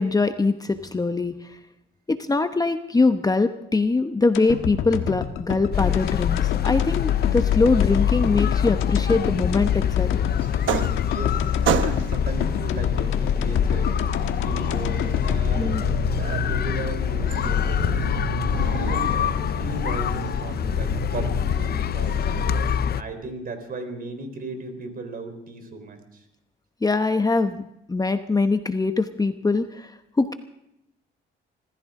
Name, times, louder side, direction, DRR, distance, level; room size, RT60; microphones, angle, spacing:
voice 1, 0.0-1.6 2.1-10.1 15.6-15.8 26.8-27.6 27.9-29.9 30.2-30.3, left 3 dB, 20° left, 8 dB, 0.9 m, -23 dB
sound 1, 4.3-16.6 16.9-17.0, left 8 dB, 85° left, 1.4 m, -29 dB
sound 2, 5.7-23.0, left 9 dB, 50° left, 0.6 m, -25 dB
sound 3, 10.4-11.3 11.6-12.3 13.4-22.8, right 9 dB, 75° right, 1.1 m, -31 dB
voice 2, 11.1-13.9 14.4-18.0 18.7-22.4 23.0-26.2, right 3 dB, 50° right, 7 dB, 4.1 m, -36 dB
25.0 x 14.5 x 3.7 m, 0.82 s
cardioid pair, 90°, 20 cm